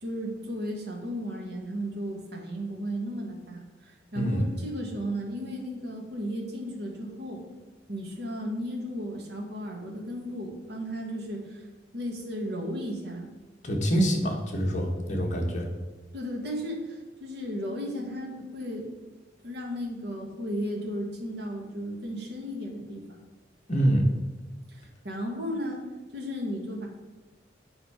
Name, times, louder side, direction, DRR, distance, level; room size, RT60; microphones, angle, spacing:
voice 1, 0.0-7.4 7.9-11.6 11.9-13.3 16.1-18.9 19.4-23.2 24.7-25.8 26.1-26.9, equal, 65° right, 0 dB, 1.7 m, -34 dB
voice 2, 4.1-4.5 13.6-15.7 23.7-24.1, right 1 dB, 40° left, -1 dB, 1.5 m, -25 dB
8.4 x 4.8 x 4.9 m, 1.2 s
head